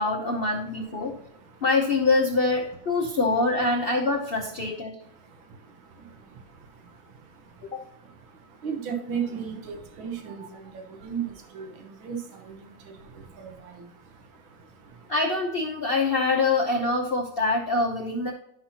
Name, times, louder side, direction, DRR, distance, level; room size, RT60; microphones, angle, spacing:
voice 1, 0.0-1.1 1.6-5.0 7.7-7.8 15.1-18.3, left 3 dB, 80° left, 2 dB, 0.5 m, -24 dB
voice 2, 0.8-1.6 5.0-15.1, right 7 dB, 85° right, 3 dB, 1.9 m, -38 dB
11.0 x 5.8 x 2.8 m, 0.77 s
omnidirectional pair, 2.1 m